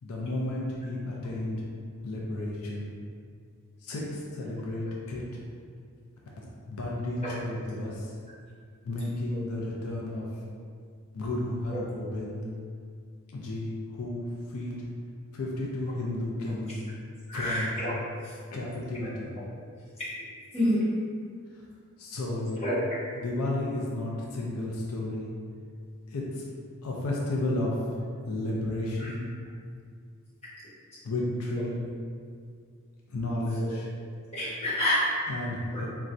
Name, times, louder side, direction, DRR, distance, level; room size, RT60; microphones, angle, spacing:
voice 1, 0.0-1.6 2.0-2.9 3.8-5.2 6.7-8.1 8.9-10.3 11.1-12.4 13.3-14.8 15.3-16.8 17.3-17.7 18.5-19.3 22.0-22.6 23.1-25.3 26.1-26.4 26.8-27.7 28.3-29.2 31.0-31.7 33.1-33.9 35.3-35.9, left 1 dB, 90° left, -3 dB, 0.5 m, -32 dB
voice 2, 17.3-17.9 18.2-18.3 20.0-20.1 20.5-20.9 22.6-23.0 29.0-29.1 33.6-33.7 34.3-35.1 35.7-35.8, equal, 30° left, -11 dB, 1.2 m, -28 dB
4.1 x 2.3 x 2.5 m, 2.1 s
head